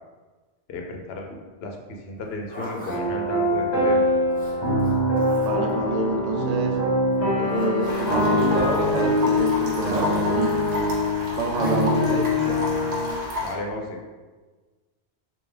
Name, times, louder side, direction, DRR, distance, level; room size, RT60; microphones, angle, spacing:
voice 1, 0.7-4.0 13.4-14.0, left 2 dB, 70° left, 2 dB, 0.8 m, -34 dB
Zipper (clothing), 2.2-3.0 4.3-5.7 7.1-8.2 9.7-10.1 11.5-11.8, equal, 10° left, 0.7 m, -40 dB
sound 1, 2.8-13.1, left 1 dB, 40° left, 1.1 m, -23 dB
voice 2, 5.4-6.8 7.4-10.7 11.4-12.3, right 3 dB, 50° right, 2 dB, 0.5 m, -27 dB
sound 2, 7.8-13.5, left 2 dB, 70° right, 1.1 m, -32 dB
3.4 x 2.8 x 3.2 m, 1.3 s
omnidirectional pair, 1.1 m